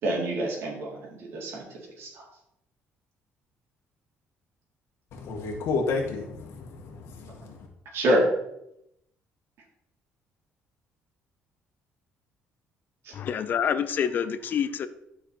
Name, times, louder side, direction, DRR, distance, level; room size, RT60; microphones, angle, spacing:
voice 1, 0.0-2.3 7.9-8.3 13.0-13.1, right 1 dB, 60° right, -3 dB, 4.1 m, -27 dB
voice 2, 5.1-7.7, left 4 dB, 70° left, 1 dB, 1.8 m, -31 dB
voice 3, 13.1-14.9, left 8 dB, 45° left, 12 dB, 0.7 m, -27 dB
12.0 x 6.1 x 4.6 m, 0.80 s
cardioid pair, 155°, 5 cm